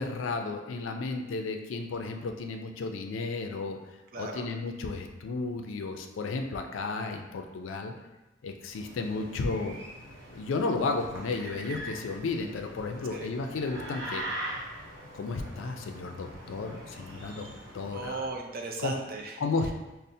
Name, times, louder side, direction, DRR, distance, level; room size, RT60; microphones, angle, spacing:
voice 1, 0.0-3.8 4.2-7.9 8.4-9.8 10.3-14.3 15.1-17.5 17.7-18.2 18.8-18.9 19.4-19.7, left 3 dB, 75° left, 5 dB, 0.4 m, -33 dB
voice 2, 4.1-4.5 13.1-13.3 17.9-19.4, right 3 dB, 50° right, 2 dB, 0.4 m, -36 dB
sound 1, 8.6-18.4, right 1 dB, 70° right, 0.9 m, -42 dB
5.4 x 2.0 x 2.6 m, 1.1 s
head